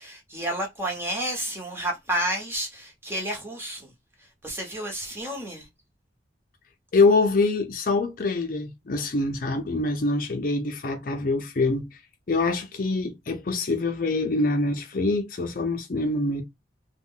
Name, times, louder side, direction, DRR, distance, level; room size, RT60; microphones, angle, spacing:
voice 1, 0.0-3.9 4.4-5.7, right 1 dB, 15° right, 0.8 m, -30 dB
voice 2, 6.9-11.9 12.3-16.4, left 3 dB, 50° left, 0.5 m, -24 dB
2.4 x 2.2 x 3.5 m
head